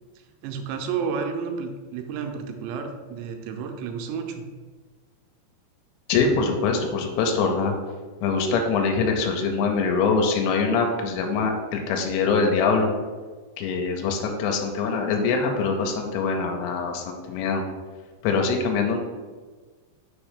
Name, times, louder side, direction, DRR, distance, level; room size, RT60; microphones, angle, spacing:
voice 1, 0.4-4.5, right 6 dB, 80° right, 4 dB, 2.7 m, -31 dB
voice 2, 6.1-7.7 8.2-12.9 13.6-17.6 18.2-19.1, left 4 dB, 85° left, 3 dB, 3.0 m, -23 dB
6.6 x 3.1 x 4.9 m, 1.4 s
omnidirectional pair, 5.1 m